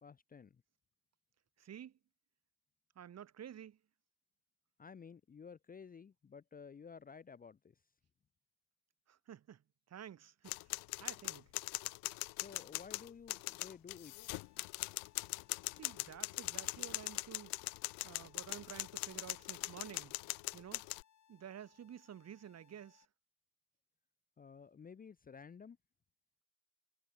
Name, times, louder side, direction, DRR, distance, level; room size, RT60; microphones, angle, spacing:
voice 1, 0.0-0.6 4.8-7.7 12.4-14.3 24.4-25.8, left 6 dB, 25° left, 0.7 m, -53 dB
voice 2, 1.6-1.9 3.0-3.8 9.1-9.6 9.9-11.5 15.8-17.6 18.0-20.2 20.5-20.9 21.3-23.1, right 9 dB, 45° right, 1.9 m, -51 dB
sound 1, 10.5-21.0, left 24 dB, 65° left, 0.6 m, -41 dB
sound 2, 14.1-23.1, left 9 dB, 50° left, 7.3 m, -70 dB
supercardioid pair, 75°, 38 cm